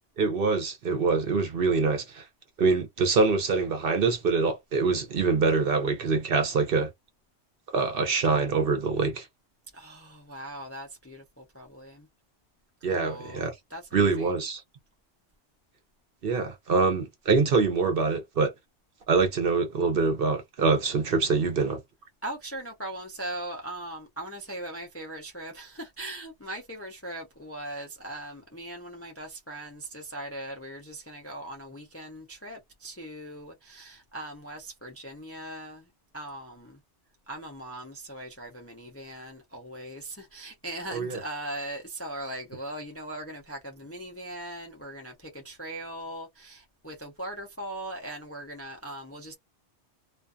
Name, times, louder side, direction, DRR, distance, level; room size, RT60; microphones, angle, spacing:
voice 1, 0.2-2.3 2.6-6.9 7.7-9.3 12.8-13.5 13.9-14.6 16.2-18.5 19.1-21.8 40.9-41.2, right 4 dB, 55° right, 0.8 m, -25 dB
voice 2, 9.7-12.1 12.9-14.4 22.2-35.9 36.1-36.8 37.3-49.3, right 1 dB, 20° left, 0.4 m, -40 dB
2.5 x 2.3 x 2.4 m
omnidirectional pair, 1.2 m